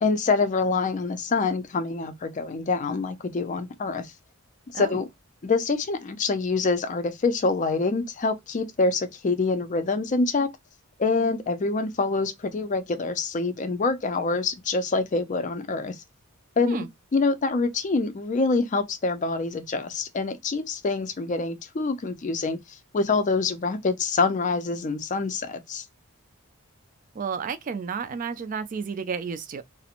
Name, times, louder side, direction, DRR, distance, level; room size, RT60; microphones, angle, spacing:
voice 1, 0.0-4.1 4.7-5.1 5.4-10.5 11.0-16.0 16.6-16.9 17.1-22.6 22.9-25.8, left 3 dB, 35° left, 0.4 m, -25 dB
voice 2, 27.2-29.6, right 6 dB, 40° right, 0.3 m, -31 dB
2.4 x 2.0 x 2.8 m
head